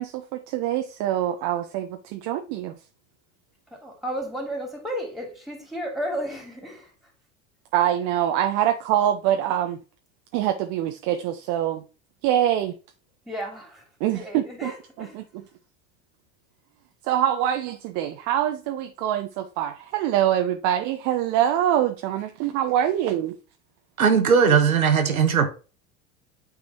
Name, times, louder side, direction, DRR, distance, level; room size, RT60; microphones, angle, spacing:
voice 1, 0.0-2.7 7.7-9.8 10.3-11.8 12.2-12.7 14.0-14.7 15.0-15.4 17.0-23.4, right 11 dB, 45° right, 0.8 m, -24 dB
voice 2, 3.7-6.9 13.3-13.8 14.1-15.2, equal, ahead, 2.8 m, -33 dB
voice 3, 24.0-25.5, right 6 dB, 85° right, 1.3 m, -18 dB
8.7 x 3.7 x 4.5 m
hypercardioid pair, 85°, 41 cm